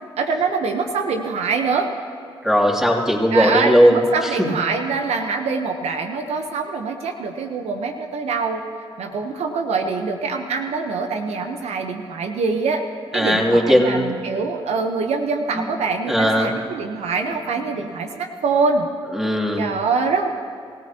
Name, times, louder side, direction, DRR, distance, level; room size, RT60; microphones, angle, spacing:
voice 1, 0.2-1.9 3.3-8.6 9.0-12.8 13.1-18.9 19.6-20.3, right 4 dB, 75° right, 5 dB, 1.0 m, -24 dB
voice 2, 2.4-4.5 13.1-14.2 15.5-15.7 16.1-16.5 19.1-19.7, equal, 5° right, -1 dB, 3.0 m, -18 dB
27.0 x 14.5 x 3.0 m, 2.4 s
supercardioid pair, 50°, 11 cm